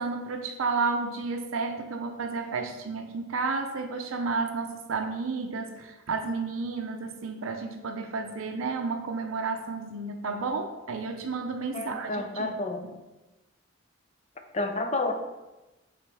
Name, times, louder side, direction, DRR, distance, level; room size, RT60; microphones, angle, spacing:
voice 1, 0.0-12.5, right 4 dB, 90° right, 4 dB, 0.6 m, -31 dB
voice 2, 11.7-12.9 14.5-15.1, left 2 dB, 35° left, 5 dB, 0.6 m, -30 dB
7.5 x 4.0 x 3.4 m, 1.1 s
head